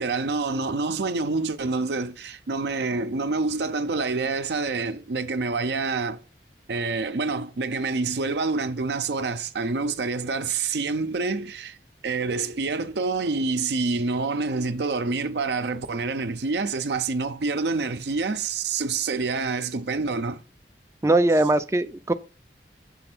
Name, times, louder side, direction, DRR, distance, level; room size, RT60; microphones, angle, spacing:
voice 1, 0.0-6.2 6.7-11.8 12.0-20.4, right 4 dB, 75° right, 0.6 m, -27 dB
voice 2, 21.0-22.1, right 2 dB, 15° right, 0.4 m, -20 dB
7.0 x 3.3 x 6.0 m
head